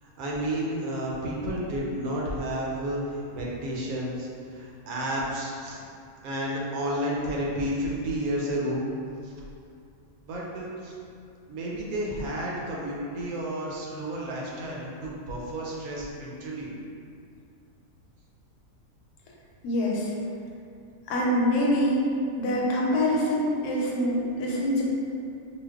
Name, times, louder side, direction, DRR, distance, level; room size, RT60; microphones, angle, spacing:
voice 1, 0.0-4.3 4.5-5.8 6.2-8.8 9.2-9.3 10.2-10.9 11.5-16.7, right 1 dB, 75° right, -4 dB, 1.0 m, -31 dB
voice 2, 19.6-20.1 21.1-22.0 22.4-24.8, left 1 dB, 85° left, -3 dB, 1.1 m, -25 dB
2.5 x 2.2 x 3.4 m, 2.5 s
omnidirectional pair, 1.6 m